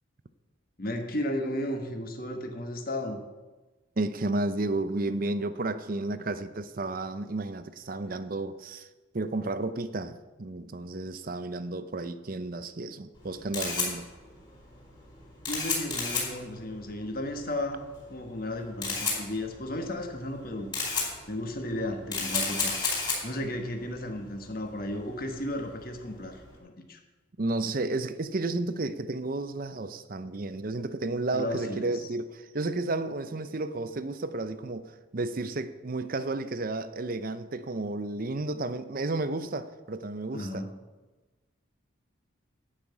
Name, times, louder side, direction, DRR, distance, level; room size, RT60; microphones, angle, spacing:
voice 1, 0.8-3.2 15.5-17.8 18.1-27.0 31.3-32.0 40.3-40.8, left 1 dB, 45° left, 1.5 m, -34 dB
voice 2, 4.0-8.9 9.1-14.1 27.4-40.6, right 2 dB, 45° right, 0.6 m, -32 dB
Camera, 13.1-26.5, left 4 dB, 25° left, 4.7 m, -34 dB
11.5 x 5.8 x 8.4 m
head